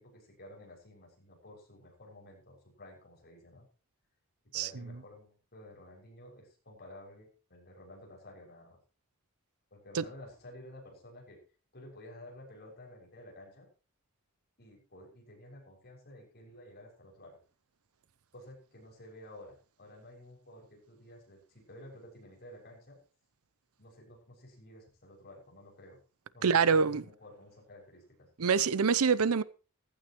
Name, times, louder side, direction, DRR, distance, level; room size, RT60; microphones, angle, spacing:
voice 1, 0.0-3.7 4.4-8.8 9.7-11.4 11.7-13.7 14.6-17.4 18.3-23.0 23.8-26.0 26.3-28.3, left 1 dB, 45° left, 6.6 m, -52 dB
voice 2, 26.4-27.0 28.4-29.4, right 6 dB, 75° right, 0.7 m, -25 dB
15.5 x 14.5 x 3.1 m
head